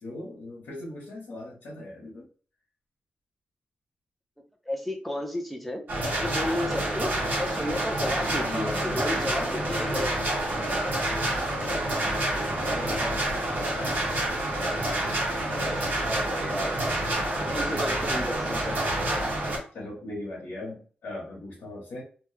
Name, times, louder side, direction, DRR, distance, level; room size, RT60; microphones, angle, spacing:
voice 1, 0.0-2.3 6.2-6.5 8.3-9.5 9.8-14.0 17.3-17.8 19.7-22.0, left 1 dB, 85° left, -5 dB, 1.1 m, -40 dB
voice 2, 4.7-5.8 6.2-7.1 7.4-10.2 15.7-16.9 17.3-18.8, left 1 dB, ahead, 4 dB, 0.5 m, -33 dB
sound 1, 5.9-19.6, right 1 dB, 60° right, 1.5 m, -28 dB
3.0 x 2.3 x 3.2 m, 0.40 s
cardioid pair, 90°, 3 cm